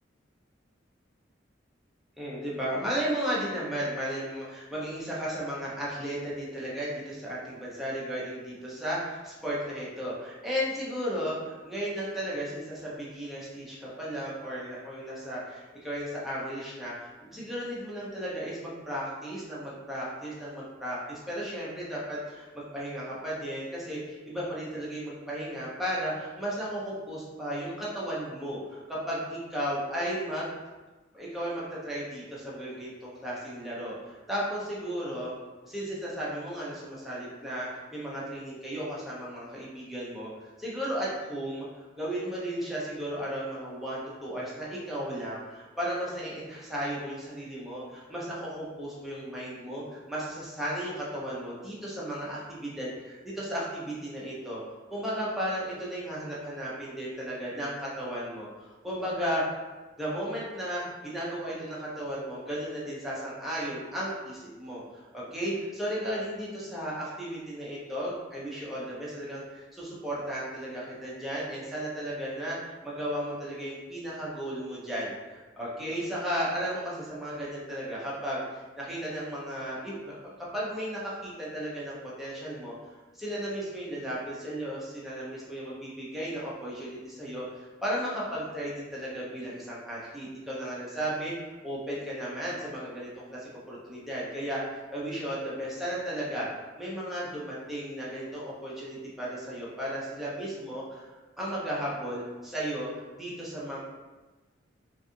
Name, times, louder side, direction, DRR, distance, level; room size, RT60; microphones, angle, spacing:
voice 1, 2.2-30.5 31.1-35.3 35.6-40.3 40.6-54.6 54.9-58.5 58.8-59.6 60.0-72.6 72.8-80.2 80.5-82.7 83.1-91.3 91.6-96.5 96.8-101.0 101.4-103.8, equal, ahead, -7 dB, 0.6 m, -35 dB
2.5 x 2.4 x 2.6 m, 1.2 s
head